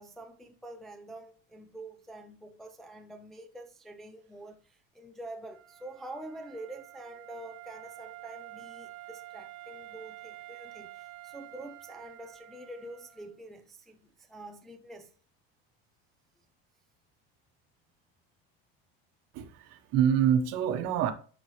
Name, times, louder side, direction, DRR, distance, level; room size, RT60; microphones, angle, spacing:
voice 1, 0.0-15.1, right 1 dB, ahead, 0.4 m, -46 dB
Wind instrument woodwind instrument, 5.5-13.3, right 17 dB, 80° right, 1.0 m, -48 dB
voice 2, 19.3-21.1, right 9 dB, 55° right, 1.1 m, -26 dB
11.0 x 4.1 x 3.1 m
supercardioid pair, 145°, 31 cm